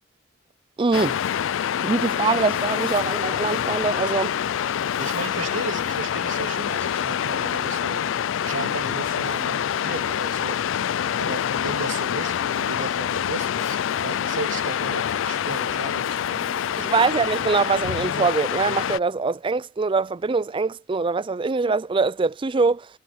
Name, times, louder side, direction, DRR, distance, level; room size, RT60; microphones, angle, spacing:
voice 1, 0.8-1.2 1.8-4.4 16.8-22.9, right 4 dB, 25° right, 0.4 m, -23 dB
Waves surf, 0.9-19.0, left 9 dB, 75° left, 0.4 m, -26 dB
voice 2, 5.0-8.1 8.4-10.6 11.0-17.4, right 3 dB, 80° right, 3.2 m, -35 dB
head